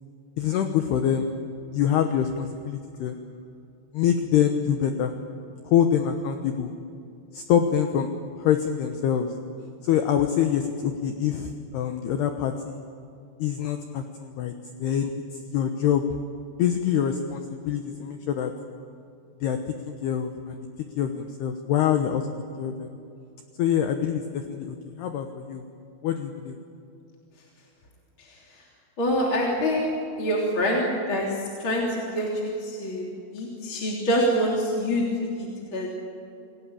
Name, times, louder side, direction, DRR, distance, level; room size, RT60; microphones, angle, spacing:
voice 1, 0.4-1.3 1.7-3.1 3.9-5.1 5.6-6.7 7.3-8.1 8.4-9.3 9.8-12.8 13.4-14.5 14.8-15.1 15.5-16.1 16.6-18.5 19.4-19.6 19.8-20.7 21.0-22.3 22.6-22.9 23.6-25.6 26.0-26.6, left 9 dB, 75° left, 6 dB, 2.6 m, -25 dB
voice 2, 29.0-29.9 30.2-31.3 31.6-35.0 35.4-35.9, equal, 30° left, -2 dB, 3.3 m, -26 dB
29.0 x 18.5 x 8.8 m, 2.7 s
omnidirectional pair, 5.9 m